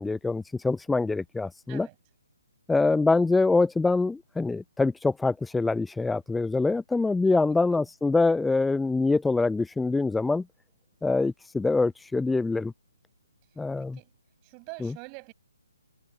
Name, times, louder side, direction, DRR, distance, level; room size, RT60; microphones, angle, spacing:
voice 1, 0.0-1.9 2.7-10.4 11.0-12.7 13.6-14.0 14.8-14.9, left 3 dB, 5° left, 0.3 m, -25 dB
voice 2, 13.8-14.1 14.4-15.3, right 40 dB or more, 20° right, 6.8 m, -45 dB
figure-of-eight pair, 140°, 0 cm